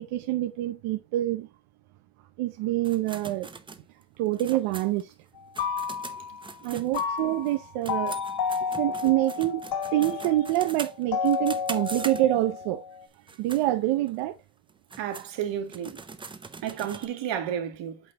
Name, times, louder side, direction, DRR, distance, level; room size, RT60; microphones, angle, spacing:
voice 1, 0.0-1.5 2.4-3.5 4.2-5.1 6.6-8.2 8.8-12.8 13.4-14.4, right 15 dB, 90° right, 0.9 m, -26 dB
sound 1, 2.8-7.5 7.8-12.6 13.1-13.6 14.1-14.2 14.7-17.1, right 4 dB, 10° right, 0.4 m, -42 dB
sound 2, 5.4-6.5 6.9-13.0, left 6 dB, 55° left, 2.2 m, -32 dB
voice 2, 15.0-16.0 16.6-18.0, right 9 dB, 60° right, 2.0 m, -32 dB
8.3 x 4.2 x 4.0 m
cardioid pair, 155°, 49 cm